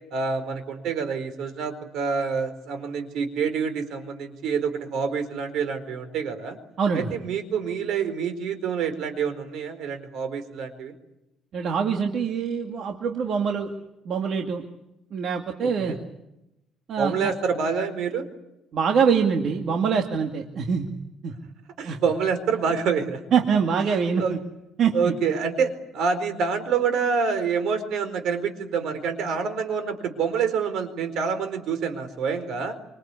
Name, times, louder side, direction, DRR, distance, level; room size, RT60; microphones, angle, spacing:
voice 1, 0.1-6.6 6.9-10.9 15.8-16.0 17.0-18.3 21.8-23.2 24.2-24.3 24.9-32.7, right 6 dB, 60° right, 9 dB, 4.4 m, -27 dB
voice 2, 6.8-7.1 11.5-13.7 14.0-14.6 15.1-16.0 16.9-17.3 18.7-20.9 21.2-21.3 21.8-22.0 23.3-24.4 24.8-25.1, right 6 dB, 45° right, 3 dB, 2.3 m, -24 dB
26.0 x 26.0 x 8.5 m, 0.90 s
cardioid pair, 155°, 0 cm